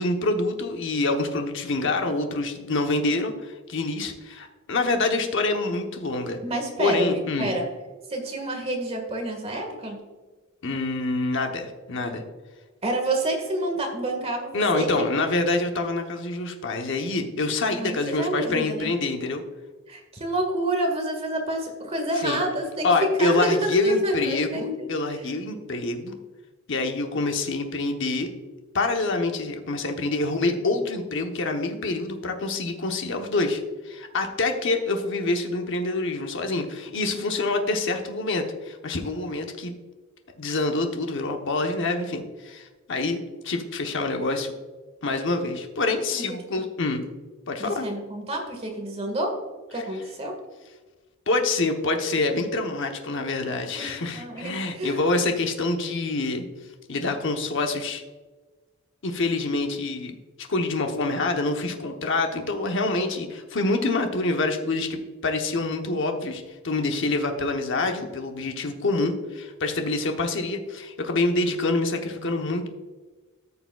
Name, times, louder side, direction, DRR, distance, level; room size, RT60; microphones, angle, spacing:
voice 1, 0.0-6.4 6.8-7.5 10.6-12.2 14.5-19.4 22.2-22.4 22.8-26.2 26.7-28.3 28.7-39.7 40.4-43.2 43.4-44.5 45.0-47.0 47.5-47.9 51.3-56.4 56.9-58.0 59.0-60.1 60.5-72.7, left 2 dB, 60° left, 4 dB, 0.9 m, -26 dB
voice 2, 6.4-7.6 8.1-10.0 12.8-15.2 17.7-18.9 19.9-25.3 46.1-46.2 47.6-49.3 49.7-50.4 53.8-55.0, right 1 dB, 30° right, 2 dB, 1.7 m, -28 dB
13.5 x 6.8 x 2.3 m, 1.3 s
head